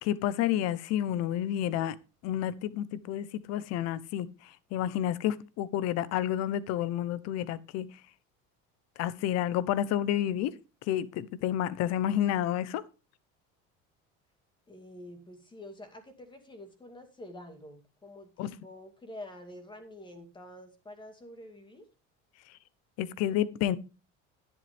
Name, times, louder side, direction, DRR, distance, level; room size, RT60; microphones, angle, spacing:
voice 1, 0.0-2.0 2.2-8.0 9.0-12.9 18.4-18.6 22.5-22.6 23.0-23.8, left 11 dB, 60° left, 1.0 m, -30 dB
voice 2, 14.7-21.9, left 1 dB, 15° left, 2.2 m, -47 dB
11.0 x 10.5 x 3.5 m
cardioid pair, 155°, 29 cm